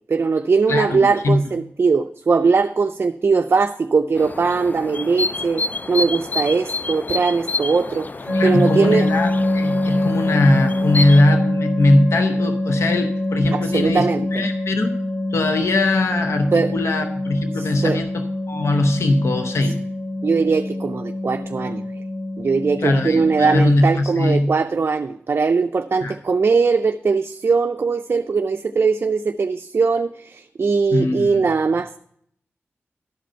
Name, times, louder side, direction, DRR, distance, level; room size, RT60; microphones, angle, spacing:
voice 1, 0.1-8.1 8.4-9.1 13.5-14.4 16.5-16.7 17.6-18.0 20.2-21.8 22.4-32.0, right 4 dB, 55° right, 7 dB, 0.4 m, -20 dB
voice 2, 0.7-1.4 8.3-14.9 15.3-19.8 22.8-24.5 26.0-26.2 30.9-31.4, left 2 dB, 85° left, 5 dB, 0.7 m, -20 dB
sound 1, 4.2-11.2, left 3 dB, 40° left, 0.3 m, -29 dB
sound 2, 8.3-23.6, left 1 dB, 5° left, 2.6 m, -24 dB
11.5 x 5.1 x 5.6 m, 0.70 s
cardioid pair, 60°, 5 cm